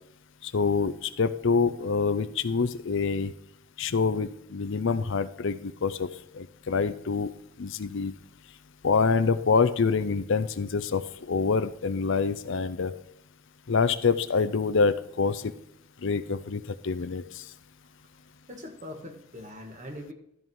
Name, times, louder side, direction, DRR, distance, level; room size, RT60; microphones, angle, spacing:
voice 1, 0.4-3.3 3.8-6.1 6.3-7.3 7.6-8.1 8.8-12.9 13.7-15.4 16.0-17.4, left 4 dB, 65° left, 13 dB, 0.6 m, -26 dB
voice 2, 18.5-20.1, left 1 dB, 35° right, 4 dB, 1.6 m, -41 dB
13.0 x 4.7 x 5.4 m, 0.79 s
head